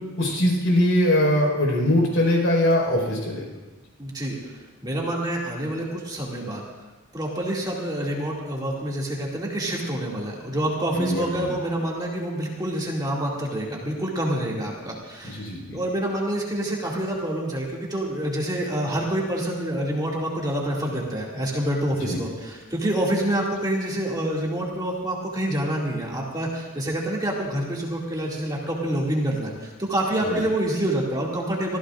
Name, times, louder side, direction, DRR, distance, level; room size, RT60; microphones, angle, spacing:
voice 1, 0.2-3.5 10.9-11.5 15.2-15.8 22.0-22.2 30.3-30.4, left 1 dB, 65° left, 0 dB, 4.8 m, -22 dB
voice 2, 4.0-6.6 7.1-15.5 15.7-31.8, right 1 dB, 20° right, -3 dB, 2.4 m, -27 dB
24.5 x 16.0 x 2.5 m, 1.2 s
head